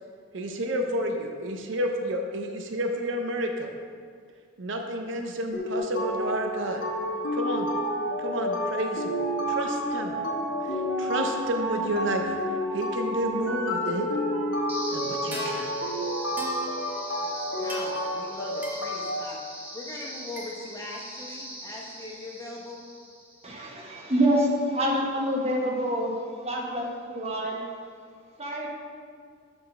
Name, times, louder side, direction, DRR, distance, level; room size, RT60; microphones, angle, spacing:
voice 1, 0.3-3.7 4.6-6.8 7.3-7.7 8.2-9.1 9.5-10.1 10.6-14.1 14.9-15.7, right 1 dB, 65° right, 4 dB, 0.5 m, -30 dB
sound 1, 5.5-19.2, equal, 70° left, 0.9 m, -30 dB
sound 2, 14.7-23.7, equal, 10° right, 1.0 m, -40 dB
voice 2, 17.1-22.9, left 2 dB, 15° left, -2 dB, 0.7 m, -41 dB
voice 3, 23.4-27.7 28.4-28.7, equal, 30° right, -2 dB, 1.0 m, -27 dB
6.5 x 4.0 x 5.5 m, 2.1 s
head